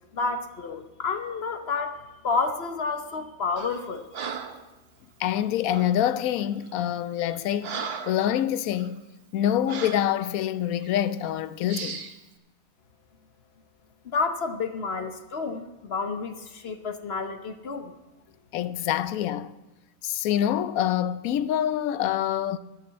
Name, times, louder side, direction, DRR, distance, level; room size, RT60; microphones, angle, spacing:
voice 1, 0.1-2.0 2.2-4.1 14.0-17.9, left 4 dB, 50° left, 1.0 m, -30 dB
Breathing, 3.6-3.8 4.1-4.7 5.7-6.0 6.6-6.8 7.2-8.3 8.7-8.9 9.7-10.1 10.8-11.0 11.7-12.2, right 6 dB, 50° right, 1.0 m, -36 dB
voice 2, 5.2-7.8 8.1-9.0 9.3-12.1 18.5-19.5 20.0-22.6, left 11 dB, 90° left, 1.1 m, -26 dB
13.0 x 7.0 x 7.5 m
omnidirectional pair, 1.4 m